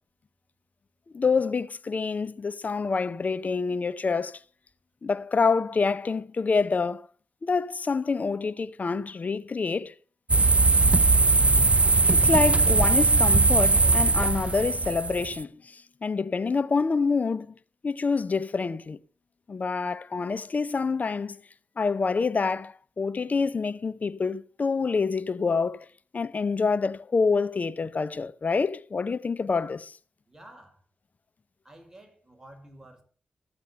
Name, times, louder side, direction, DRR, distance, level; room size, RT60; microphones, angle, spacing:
voice 1, 1.1-4.4 5.0-7.1 7.4-9.9 12.1-17.5 17.8-19.0 19.5-21.4 21.8-25.9 26.1-30.0, left 4 dB, 50° left, 0.8 m, -27 dB
sound 1, 10.3-15.4, right 3 dB, 35° right, 0.7 m, -20 dB
voice 2, 30.3-30.8 31.6-33.0, right 1 dB, 15° right, 5.5 m, -50 dB
14.0 x 8.1 x 6.9 m
supercardioid pair, 45°, 4 cm